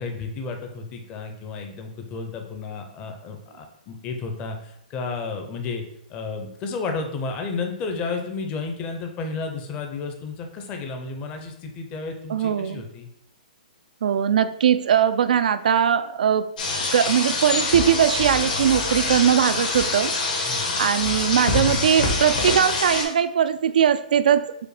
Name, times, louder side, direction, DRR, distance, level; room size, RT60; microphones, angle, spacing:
voice 1, 0.0-5.8 6.1-13.1 20.4-20.8, left 4 dB, 25° left, 4 dB, 0.6 m, -32 dB
voice 2, 12.3-12.8 14.0-16.5 16.9-20.1 20.4-24.5, right 9 dB, 70° right, 13 dB, 0.4 m, -20 dB
sound 1, 16.6-23.0, left 3 dB, 70° left, 1.5 m, -25 dB
5.0 x 2.1 x 4.8 m, 0.75 s
hypercardioid pair, 145°, 5 cm